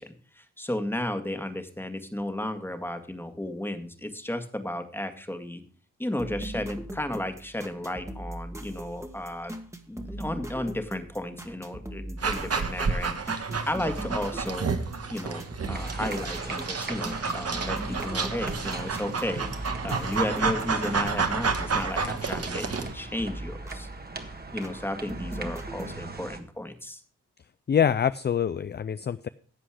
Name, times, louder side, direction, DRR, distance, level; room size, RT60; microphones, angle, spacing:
voice 1, 0.0-5.6 6.0-9.5 9.9-14.7 15.1-15.4 15.7-19.4 19.8-23.9 24.5-27.0, left 1 dB, 5° left, 7 dB, 1.7 m, -33 dB
sound 1, 6.2-22.9 23.2-24.8 25.1-25.9, right 1 dB, 10° right, 1.6 m, -40 dB
Dog, 12.2-22.9, right 5 dB, 50° right, 1.5 m, -30 dB
sound 2, 15.7-26.4, right 3 dB, 30° right, 1.6 m, -40 dB
voice 2, 27.7-29.3, left 8 dB, 35° left, 15 dB, 0.4 m, -25 dB
12.0 x 7.7 x 4.8 m, 0.42 s
cardioid pair, 65°, 31 cm